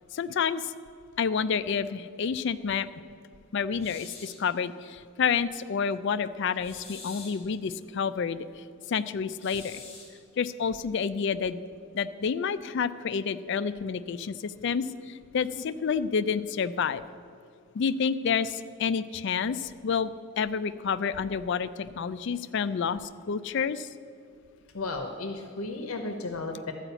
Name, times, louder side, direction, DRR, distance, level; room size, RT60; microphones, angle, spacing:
voice 1, 0.1-0.7 1.2-2.9 3.5-9.8 10.4-11.6 11.9-17.0 17.7-20.1 20.4-23.9, left 6 dB, 55° left, 14 dB, 0.3 m, -29 dB
sound 1, 3.8-4.5 6.6-7.5 9.4-10.2, left 4 dB, 30° left, 1.7 m, -45 dB
voice 2, 24.7-26.7, left 3 dB, 75° left, 5 dB, 0.8 m, -34 dB
12.5 x 5.0 x 8.0 m, 2.3 s
head